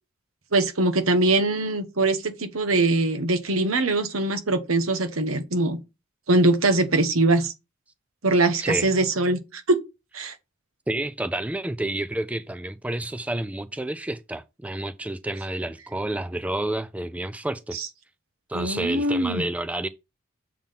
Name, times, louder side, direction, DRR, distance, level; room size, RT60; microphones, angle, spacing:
voice 1, 0.5-5.8 6.3-7.5 8.2-9.8 10.1-10.3 17.7-17.9 18.5-19.4, right 2 dB, 85° right, 1.3 m, -22 dB
voice 2, 10.9-17.8 18.5-19.9, right 1 dB, 5° right, 0.3 m, -29 dB
7.3 x 3.7 x 5.8 m
head